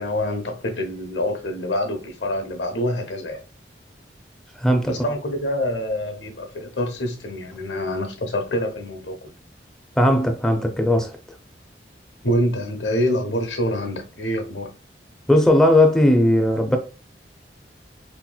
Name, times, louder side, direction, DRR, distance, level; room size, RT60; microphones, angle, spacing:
voice 1, 0.0-3.4 4.9-9.3 12.2-14.7, left 1 dB, 85° left, 0.9 m, -26 dB
voice 2, 4.6-4.9 10.0-11.1 15.3-16.8, left 1 dB, 5° left, 0.5 m, -17 dB
4.6 x 2.9 x 2.3 m
head